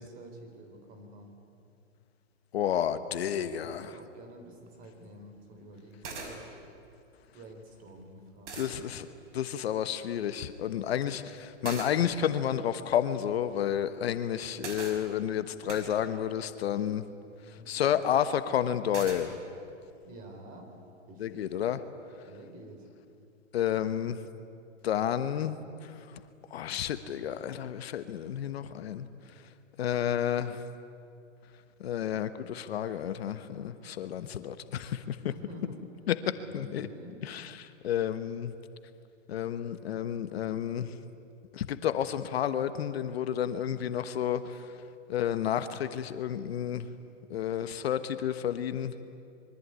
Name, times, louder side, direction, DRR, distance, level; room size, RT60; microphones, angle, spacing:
voice 1, 0.0-1.4 3.6-6.5 7.3-8.8 17.5-18.0 20.0-20.7 21.1-21.6 22.2-22.9 35.2-35.9 36.3-37.2, right 1 dB, 25° right, 5 dB, 3.9 m, -49 dB
voice 2, 2.5-3.9 8.5-9.1 9.3-17.0 17.7-19.3 21.2-21.8 23.5-24.2 24.8-25.9 26.5-29.1 29.8-30.6 31.8-35.2 36.1-36.2 36.5-36.9 37.3-38.5 39.3-40.9 41.5-44.6 45.1-46.9 47.3-48.9, left 10 dB, 55° left, 11 dB, 1.3 m, -31 dB
sound 1, 4.7-4.8 5.8-5.9 6.0-6.3 7.9-8.0 8.5-8.7 11.6-11.9 14.6-15.0 15.7-15.8 18.9-19.2, right 4 dB, 70° right, 5.8 m, -39 dB
26.0 x 23.5 x 9.6 m, 2.5 s
hypercardioid pair, 160°, 37 cm